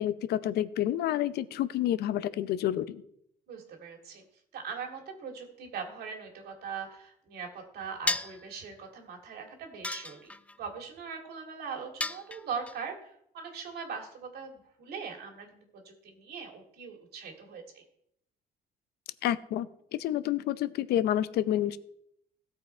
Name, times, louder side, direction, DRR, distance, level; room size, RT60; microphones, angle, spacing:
voice 1, 0.0-3.0 19.2-19.7 20.0-21.8, left 12 dB, 70° left, 14 dB, 0.6 m, -29 dB
voice 2, 3.5-4.2 4.5-10.3 10.6-14.5 14.8-17.8, right 6 dB, 70° right, 3 dB, 2.4 m, -41 dB
sound 1, 8.1-8.5 9.8-10.6 12.0-12.7, left 2 dB, 10° left, 0.4 m, -33 dB
16.5 x 5.6 x 4.4 m, 0.74 s
cardioid pair, 110°, 17 cm